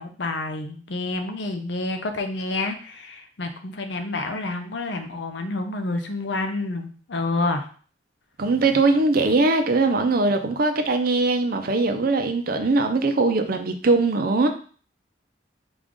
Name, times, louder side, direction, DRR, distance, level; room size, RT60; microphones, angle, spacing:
voice 1, 0.0-7.6, left 2 dB, 70° left, 6 dB, 0.7 m, -28 dB
voice 2, 8.4-14.5, right 3 dB, 55° right, 6 dB, 0.5 m, -21 dB
5.0 x 2.5 x 3.7 m, 0.42 s
head